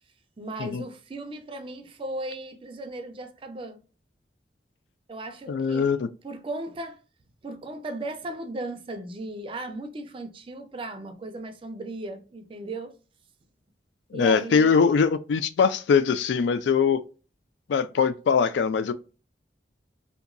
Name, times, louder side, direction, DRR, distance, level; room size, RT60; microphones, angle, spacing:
voice 1, 0.4-3.8 5.1-6.0 6.2-7.0 7.4-12.9 14.1-14.8, right 2 dB, 30° right, 0.4 m, -36 dB
voice 2, 5.5-6.1 14.1-17.0 17.7-18.9, left 6 dB, 75° left, 0.3 m, -22 dB
2.8 x 2.2 x 2.4 m
head